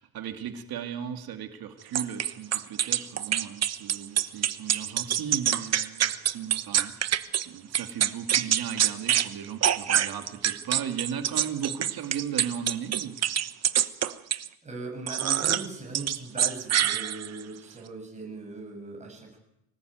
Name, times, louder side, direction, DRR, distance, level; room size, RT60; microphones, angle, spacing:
voice 1, 0.0-7.0 7.5-13.2, right 8 dB, 50° right, 5 dB, 2.4 m, -36 dB
sound 1, 1.9-7.4 7.7-9.3 9.6-14.5 15.1-15.7 15.9-17.4, right 10 dB, 35° right, 1.1 m, -25 dB
voice 2, 14.6-19.4, right 3 dB, 15° right, 0 dB, 7.9 m, -39 dB
25.0 x 19.0 x 9.3 m, 0.83 s
cardioid pair, 155°, 45 cm